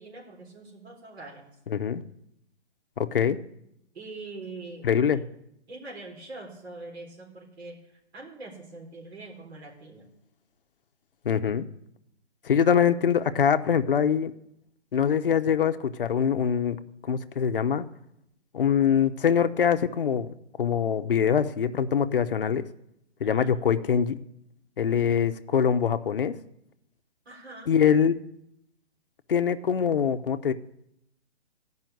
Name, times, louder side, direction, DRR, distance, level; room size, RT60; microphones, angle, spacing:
voice 1, 0.0-1.5 3.9-5.0 5.7-10.1 23.2-23.5 27.3-27.7, right 3 dB, 65° right, -2 dB, 4.2 m, -43 dB
voice 2, 1.7-2.0 3.0-3.4 4.8-5.2 11.2-11.7 12.4-14.3 14.9-16.8 17.1-17.9 18.5-20.3 20.6-22.7 23.2-24.2 24.8-26.3 27.7-28.2 29.3-30.5, left 7 dB, 50° left, 9 dB, 0.7 m, -23 dB
13.5 x 5.6 x 9.1 m, 0.80 s
hypercardioid pair, 180°, 34 cm